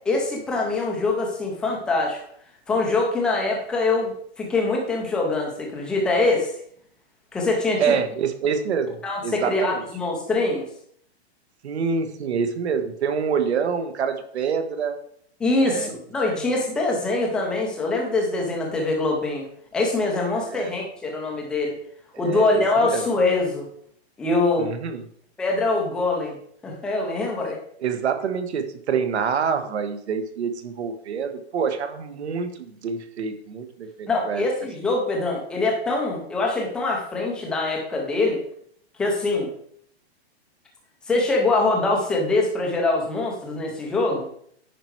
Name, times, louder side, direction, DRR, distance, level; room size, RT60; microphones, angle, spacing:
voice 1, 0.1-2.2 2.7-6.5 7.3-7.9 9.0-10.7 15.4-21.8 22.2-23.7 24.2-24.7 25.4-26.4 26.6-27.6 34.1-38.4 39.0-39.5 41.1-44.3, left 2 dB, 5° left, -1 dB, 0.4 m, -23 dB
voice 2, 7.8-8.9 9.2-9.8 11.6-15.0 15.6-15.9 16.3-16.4 20.3-20.7 22.1-23.0 24.6-25.0 27.4-34.5, right 6 dB, 80° right, 7 dB, 1.3 m, -26 dB
10.0 x 4.5 x 4.6 m, 0.65 s
hypercardioid pair, 170°, 32 cm